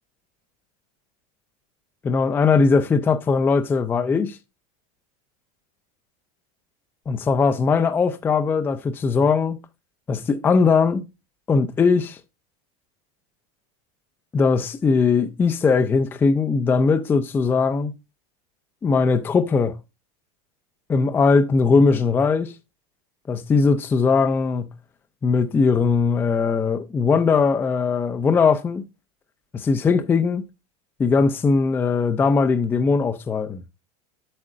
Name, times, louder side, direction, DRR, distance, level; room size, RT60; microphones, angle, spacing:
voice 1, 2.0-4.4 7.1-9.6 10.1-11.0 11.5-12.2 14.3-17.9 18.8-19.7 20.9-22.5 23.3-24.7 25.2-28.8 29.5-30.4 31.0-33.6, left 4 dB, 10° left, 0.4 m, -20 dB
8.2 x 7.6 x 2.4 m
supercardioid pair, 160°, 18 cm